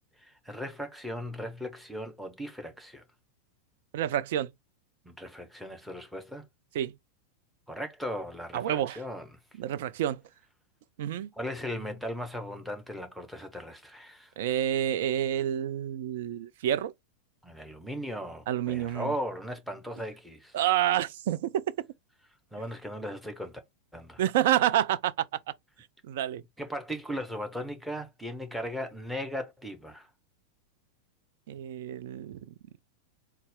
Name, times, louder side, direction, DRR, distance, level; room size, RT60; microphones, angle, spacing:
voice 1, 0.2-3.0 5.0-6.4 7.7-9.3 11.3-14.3 17.4-20.6 22.5-23.6 23.9-24.2 26.6-30.1, equal, ahead, 0.9 m, -37 dB
voice 2, 3.9-4.5 6.7-6.9 8.5-9.0 9.6-10.2 11.0-11.3 14.4-16.9 18.5-19.1 20.5-21.6 24.2-25.3 26.1-26.4 31.5-32.5, right 11 dB, 55° right, 0.3 m, -28 dB
4.1 x 2.2 x 3.6 m
figure-of-eight pair, 90°, 0 cm